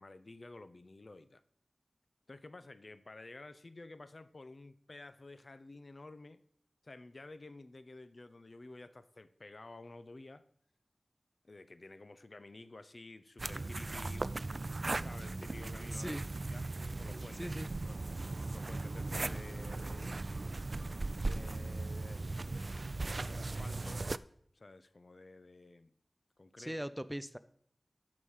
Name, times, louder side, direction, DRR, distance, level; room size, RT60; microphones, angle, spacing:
voice 1, 0.0-1.4 2.3-6.4 6.8-10.4 11.4-16.2 16.5-16.7 17.0-17.5 17.8-18.0 18.5-20.2 21.2-24.0 24.5-26.0 26.4-26.8, left 2 dB, 60° left, 12 dB, 0.6 m, -52 dB
sound 1, 13.4-24.2, right 2 dB, 60° right, 0.3 m, -38 dB
voice 2, 15.9-16.2 17.3-17.7 26.6-27.4, equal, 5° right, 14 dB, 0.5 m, -40 dB
13.0 x 4.9 x 5.5 m, 0.65 s
wide cardioid pair, 45°, 0 cm